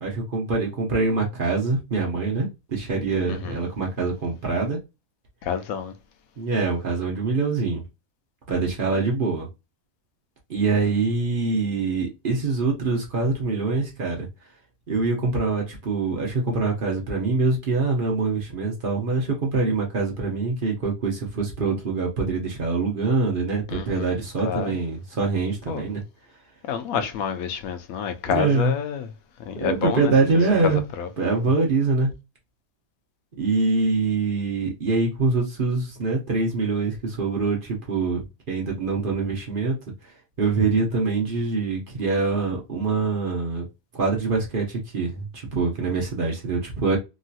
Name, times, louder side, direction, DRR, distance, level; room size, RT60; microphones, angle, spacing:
voice 1, 0.0-4.8 6.4-7.8 8.5-9.5 10.5-14.3 14.9-26.0 28.3-28.7 29.6-30.8 31.2-32.1 33.4-39.8 40.4-43.6 43.9-47.0, right 4 dB, 45° right, 0.8 m, -24 dB
voice 2, 3.3-3.6 5.4-5.9 23.7-24.2 24.4-24.8 25.7-25.8 26.7-29.1 29.4-30.1 30.6-31.1, left 8 dB, 80° left, 1.0 m, -28 dB
3.0 x 2.7 x 2.4 m
omnidirectional pair, 1.5 m